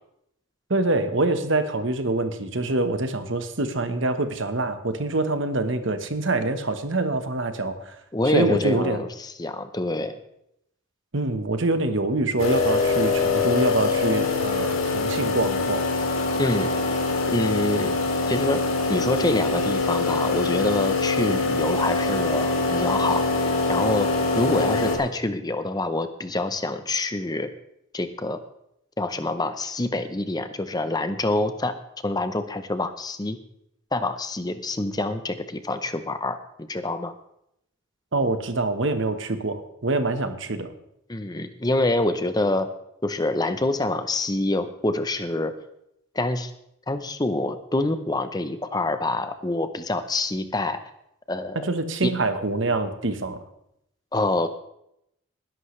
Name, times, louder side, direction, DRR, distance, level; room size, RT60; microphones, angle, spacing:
voice 1, 0.7-7.9 8.3-9.0 11.1-15.8 38.1-40.7 51.7-53.4, right 2 dB, 65° right, 8 dB, 1.2 m, -25 dB
voice 2, 8.1-10.1 16.4-16.7 17.3-18.0 18.2-18.6 18.9-23.3 23.7-24.1 24.3-27.5 27.9-28.4 29.0-31.8 32.0-33.4 33.9-37.1 41.1-42.7 43.0-45.5 46.1-46.5 46.9-50.8 51.3-51.7 52.0-52.1 54.1-54.5, left 2 dB, 20° left, 10 dB, 0.7 m, -26 dB
sound 1, 12.4-25.0, left 3 dB, 80° left, 2.9 m, -24 dB
20.0 x 11.0 x 3.3 m, 0.78 s
head